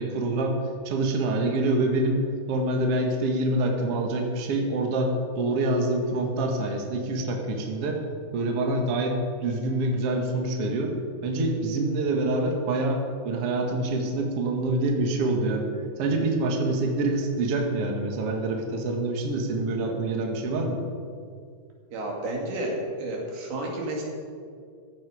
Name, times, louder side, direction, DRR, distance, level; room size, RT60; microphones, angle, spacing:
voice 1, 0.0-8.0 8.3-11.0 11.2-15.7 16.0-20.8, right 2 dB, 50° right, 2 dB, 2.1 m, -26 dB
voice 2, 21.9-24.1, right 1 dB, 75° right, -1 dB, 4.3 m, -31 dB
15.0 x 14.0 x 5.0 m, 2.3 s
omnidirectional pair, 4.4 m